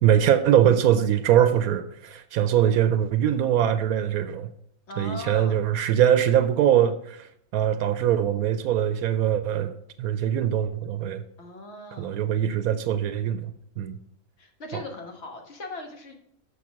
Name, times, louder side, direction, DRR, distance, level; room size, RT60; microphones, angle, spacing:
voice 1, 0.0-4.5 5.0-9.7 10.0-11.2 12.0-14.0 14.7-14.8, right 10 dB, 80° right, 10 dB, 1.0 m, -22 dB
voice 2, 4.9-5.6 11.4-12.2 14.4-16.1, left 2 dB, 50° left, 3 dB, 1.5 m, -39 dB
6.6 x 6.0 x 6.1 m, 0.73 s
omnidirectional pair, 1.5 m